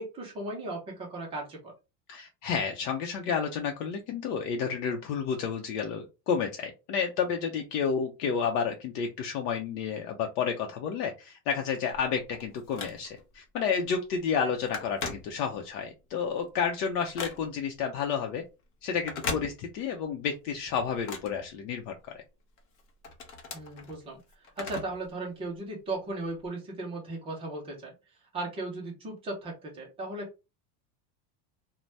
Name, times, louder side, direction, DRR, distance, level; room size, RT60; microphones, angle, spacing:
voice 1, 0.0-1.7 23.5-24.2 24.6-27.9 28.3-30.5, right 2 dB, 15° right, -2 dB, 0.4 m, -36 dB
voice 2, 2.1-18.4 18.8-22.2, left 6 dB, 65° left, 3 dB, 0.7 m, -31 dB
Telephone, 11.9-13.4 13.8-14.0 14.3-15.8 16.2-17.8 18.9-20.0 20.4-22.1 22.6-25.1 25.4-25.5 26.4-26.5, left 4 dB, 35° left, 0.7 m, -40 dB
2.6 x 2.1 x 3.2 m, 0.28 s
supercardioid pair, 160°, 50 cm